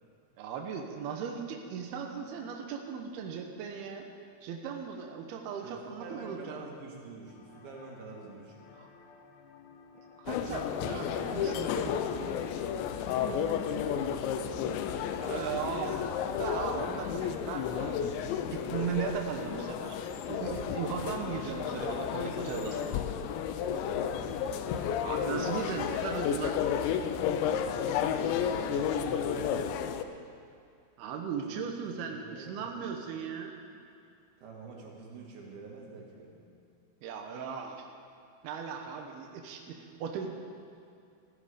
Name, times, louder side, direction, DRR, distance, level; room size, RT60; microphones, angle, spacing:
voice 1, 0.4-4.1 4.4-6.7 8.7-8.9 10.2-12.4 15.3-16.0 16.4-20.0 20.3-23.0 25.0-26.6 31.0-33.5 37.0-37.9 38.4-40.3, right 6 dB, 85° right, 3 dB, 2.2 m, -37 dB
voice 2, 5.6-8.7 13.1-15.3 23.8-24.2 28.0-29.6 31.5-31.6 32.0-33.0 34.4-36.4, right 4 dB, 60° right, -1 dB, 3.4 m, -47 dB
sound 1, 7.3-15.5, left 5 dB, 70° left, 2.7 m, -55 dB
sound 2, 10.3-30.0, left 8 dB, 90° left, 2.5 m, -32 dB
15.5 x 14.0 x 5.1 m, 2.5 s
omnidirectional pair, 5.9 m